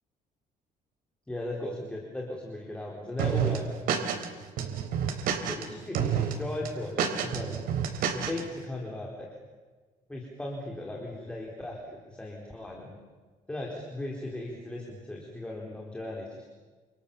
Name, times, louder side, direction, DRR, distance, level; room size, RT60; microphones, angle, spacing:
voice 1, 1.3-3.6 4.6-4.7 5.5-7.6 8.1-9.3 10.1-12.9 13.5-16.5, left 1 dB, 5° left, -2 dB, 4.2 m, -37 dB
sound 1, 3.2-4.3 4.6-5.6 5.9-6.3 6.6-8.4, right 8 dB, 80° right, 3.9 m, -28 dB
28.5 x 28.0 x 7.3 m, 1.3 s
cardioid pair, 165°, 15 cm